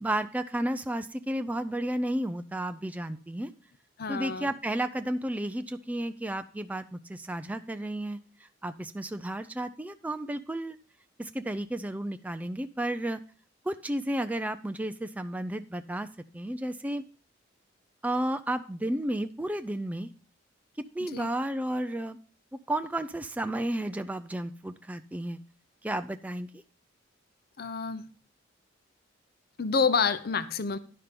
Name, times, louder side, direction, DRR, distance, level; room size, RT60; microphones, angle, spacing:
voice 1, 0.0-3.5 4.1-10.8 11.2-13.2 13.7-16.1 16.3-17.0 18.0-20.1 20.9-22.2 22.7-25.4 25.8-26.6, right 1 dB, 10° right, 0.4 m, -32 dB
voice 2, 4.0-4.5 21.0-21.3 27.6-28.0 29.6-30.8, left 5 dB, 50° left, 0.7 m, -28 dB
11.0 x 5.9 x 5.1 m
head